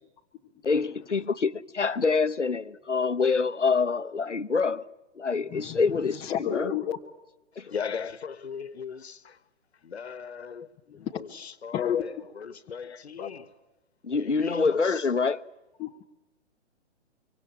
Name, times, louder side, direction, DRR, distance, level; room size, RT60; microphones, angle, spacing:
voice 1, 0.6-4.9 5.2-6.7 7.6-7.7 14.0-15.4, left 4 dB, 80° left, 1.0 m, -26 dB
voice 2, 5.5-7.0 11.0-11.2 11.7-12.3 13.2-13.3 15.8-16.1, left 9 dB, 15° left, 1.0 m, -31 dB
voice 3, 7.7-9.4 9.8-13.5 14.2-15.1, left 6 dB, 65° left, 1.5 m, -39 dB
25.0 x 24.5 x 8.8 m
figure-of-eight pair, 125°, 35 cm